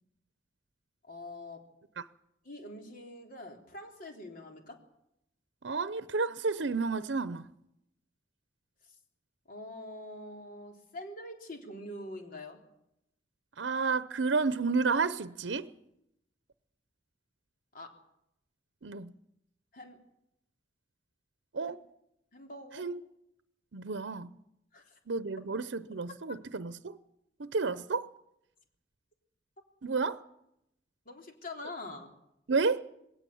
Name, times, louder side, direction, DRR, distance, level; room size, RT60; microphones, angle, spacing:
voice 1, 1.0-1.6 2.4-4.8 9.5-12.6 17.7-17.9 19.7-20.0 21.7-21.8 22.3-22.8 24.7-24.9 31.1-32.1, left 1 dB, 50° left, 3.7 m, -44 dB
voice 2, 5.6-7.5 13.6-15.7 18.8-19.1 21.5-21.8 22.7-23.0 23.7-24.3 25.1-27.0 27.4-28.1 29.8-30.2 32.5-32.9, right 4 dB, 80° right, 0.7 m, -31 dB
21.0 x 17.5 x 7.1 m
head